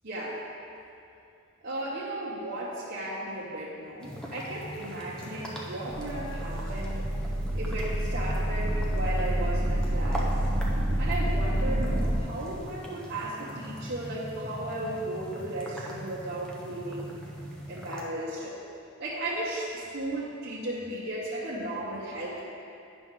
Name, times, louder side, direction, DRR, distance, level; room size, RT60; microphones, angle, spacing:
voice 1, 0.0-0.4 1.6-7.1 7.5-10.4 11.0-17.1 17.7-18.6 19.0-22.4, right 1 dB, 50° right, -8 dB, 0.9 m, -35 dB
sound 1, 4.0-18.0, equal, 5° left, 0.7 m, -41 dB
sound 2, 5.9-12.2, right 1 dB, 80° right, 1.0 m, -28 dB
9.3 x 6.1 x 3.7 m, 2.6 s
head